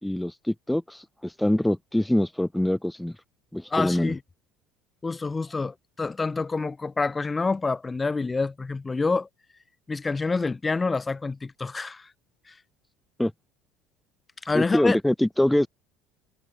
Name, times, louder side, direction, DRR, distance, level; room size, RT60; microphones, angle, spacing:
voice 1, 0.0-3.1 3.5-4.1 13.2-13.3 14.5-15.7, left 1 dB, 5° left, 3.6 m, -24 dB
voice 2, 3.7-4.2 5.0-9.3 9.9-12.1 12.5-12.6 14.4-15.0, left 3 dB, 20° left, 3.1 m, -27 dB
supercardioid pair, 90°, 0 cm